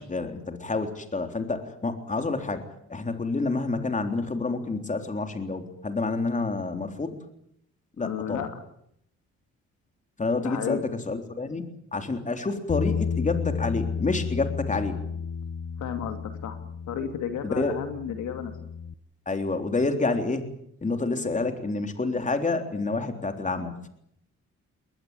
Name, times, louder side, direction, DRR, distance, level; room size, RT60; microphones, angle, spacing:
voice 1, 0.0-2.6 2.9-7.2 8.0-8.5 10.2-10.8 11.1-15.0 17.4-17.8 19.3-20.5 20.8-23.9, left 3 dB, 25° left, 6 dB, 3.7 m, -28 dB
voice 2, 8.0-8.6 10.4-10.8 15.8-16.6 16.9-18.5, left 8 dB, 75° left, 7 dB, 2.6 m, -32 dB
Bass guitar, 12.7-18.9, left 6 dB, 45° left, 0.9 m, -32 dB
22.0 x 20.0 x 8.8 m, 0.74 s
cardioid pair, 90°, 30 cm